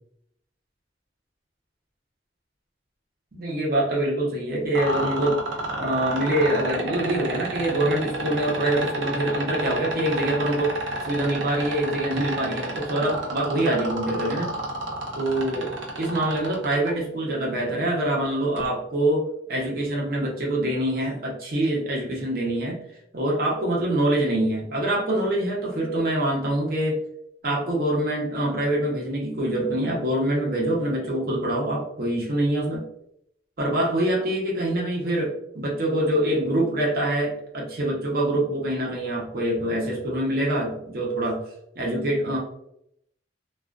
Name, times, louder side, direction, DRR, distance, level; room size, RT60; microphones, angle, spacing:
voice 1, 3.3-5.4 5.8-10.7 11.0-14.6 15.2-22.8 23.1-27.0 27.4-32.8 33.6-41.4 41.8-42.4, right 1 dB, 50° right, -2 dB, 0.7 m, -25 dB
sound 1, 4.7-16.9 18.6-18.7, right 2 dB, 85° right, 0.6 m, -30 dB
2.4 x 2.2 x 2.4 m, 0.76 s
head